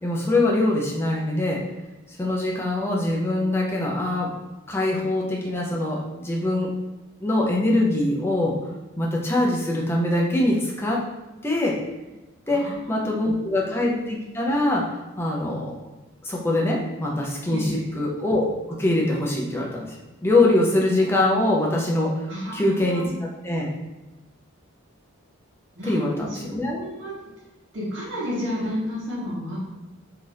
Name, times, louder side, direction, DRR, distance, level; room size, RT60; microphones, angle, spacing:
voice 1, 0.0-1.6 2.1-4.3 4.7-6.7 7.2-8.6 9.0-11.0 11.4-11.7 12.5-15.9 16.2-22.1 22.5-23.0 23.4-23.7 25.8-26.8, left 1 dB, 10° left, -2 dB, 0.4 m, -23 dB
voice 2, 12.5-13.7 17.5-17.9 22.3-23.1 25.7-26.4 26.6-27.1 27.7-29.6, equal, 60° right, -6 dB, 1.1 m, -32 dB
2.7 x 2.4 x 3.2 m, 1.1 s
head